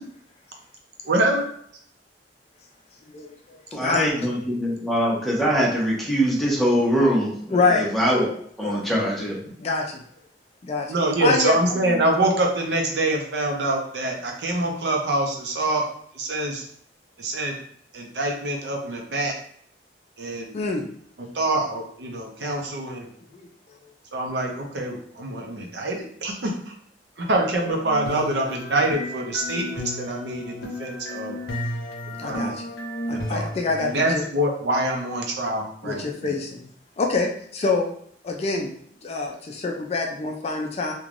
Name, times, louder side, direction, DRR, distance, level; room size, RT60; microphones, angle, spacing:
voice 1, 1.0-1.5 10.9-15.8 16.1-16.6 17.2-17.5 17.9-19.3 20.2-20.6 21.3-23.1 24.1-26.7 27.2-31.4 32.2-32.5 33.1-33.5 33.8-36.3, right 1 dB, 65° right, 1 dB, 0.6 m, -25 dB
voice 2, 3.7-8.3 8.6-9.4, equal, ahead, -6 dB, 0.7 m, -23 dB
voice 3, 7.5-7.9 8.6-8.8 9.6-10.0 10.6-11.0 11.2-12.0 20.5-20.8 23.3-23.5 32.2-32.6 33.1-34.2 35.8-36.7 37.0-37.9 38.2-38.7 39.0-40.9, left 3 dB, 35° left, 2 dB, 0.3 m, -25 dB
sound 1, 27.3-33.8, left 1 dB, 90° left, 0.6 m, -33 dB
3.1 x 2.2 x 2.5 m, 0.63 s
head